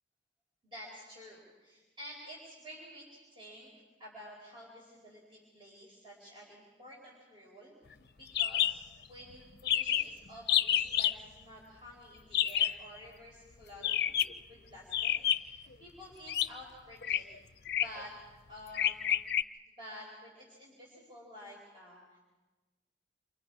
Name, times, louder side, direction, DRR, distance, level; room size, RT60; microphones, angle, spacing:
voice 1, 0.6-3.7 4.0-14.1 14.5-17.3 17.8-18.2 18.5-19.3 19.8-22.2, equal, 30° right, -4 dB, 4.8 m, -51 dB
sound 1, 8.3-8.7 9.0-9.1 9.3-9.4 9.6-10.1 10.5-11.1 12.3-12.8 13.8-14.4 14.9-15.6 16.3-16.5 17.0-17.2 17.6-18.0 18.7-19.4, left 11 dB, 60° left, 0.6 m, -29 dB
29.0 x 26.0 x 4.9 m, 1.2 s
head